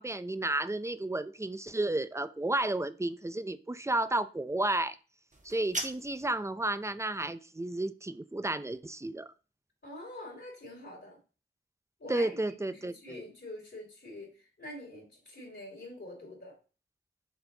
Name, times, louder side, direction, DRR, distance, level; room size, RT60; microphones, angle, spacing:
voice 1, 0.0-5.0 5.4-9.3 12.1-13.2, right 2 dB, 15° right, 14 dB, 0.5 m, -32 dB
sound 1, 5.3-6.3, right 2 dB, 35° right, 1.2 m, -38 dB
voice 2, 9.8-11.2 12.0-16.6, left 1 dB, 55° left, -4 dB, 2.6 m, -46 dB
7.1 x 4.1 x 3.8 m, 0.35 s
wide cardioid pair, 50°, 21 cm